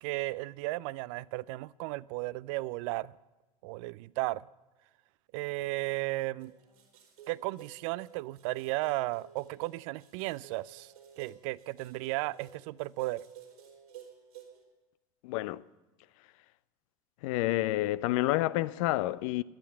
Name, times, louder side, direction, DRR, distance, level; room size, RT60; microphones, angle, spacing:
voice 1, 0.0-3.1 3.6-4.5 5.3-6.5 7.3-13.2, right 19 dB, 60° right, 0.5 m, -35 dB
sound 1, 6.4-14.6, right 9 dB, 80° right, 4.0 m, -53 dB
voice 2, 15.2-15.6 17.2-19.4, left 17 dB, 60° left, 0.6 m, -29 dB
18.0 x 12.0 x 5.6 m
figure-of-eight pair, 75°, 19 cm